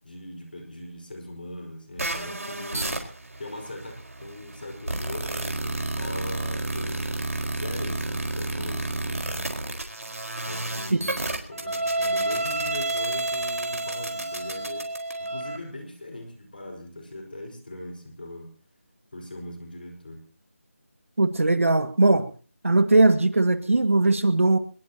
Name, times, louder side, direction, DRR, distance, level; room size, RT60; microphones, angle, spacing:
voice 1, 0.0-3.0 3.4-7.1 7.5-9.5 10.4-14.9 15.2-18.5 19.1-20.2, left 1 dB, 40° left, 3 dB, 5.1 m, -40 dB
sound 1, 2.0-15.6, right 2 dB, 80° right, 4.6 m, -30 dB
voice 2, 21.2-22.3 22.6-24.6, right 2 dB, 65° right, 9 dB, 1.9 m, -19 dB
22.0 x 21.5 x 2.9 m, 0.37 s
figure-of-eight pair, 180°, 8 cm